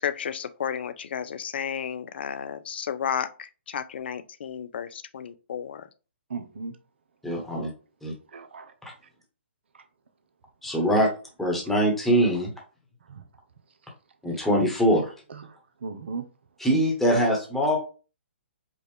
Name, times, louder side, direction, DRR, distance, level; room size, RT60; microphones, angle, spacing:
voice 1, 0.0-5.9, left 8 dB, 60° left, 0.5 m, -32 dB
voice 2, 6.3-6.8 8.3-8.7 9.7-9.8 13.1-13.2 15.3-16.3, right 4 dB, 70° right, 0.7 m, -37 dB
voice 3, 7.2-7.7 8.0-8.1 8.8-8.9 10.6-11.1 11.4-12.5 14.2-15.1 16.6-17.8, equal, 5° left, 1.2 m, -23 dB
4.9 x 2.4 x 3.4 m
figure-of-eight pair, 135°, 6 cm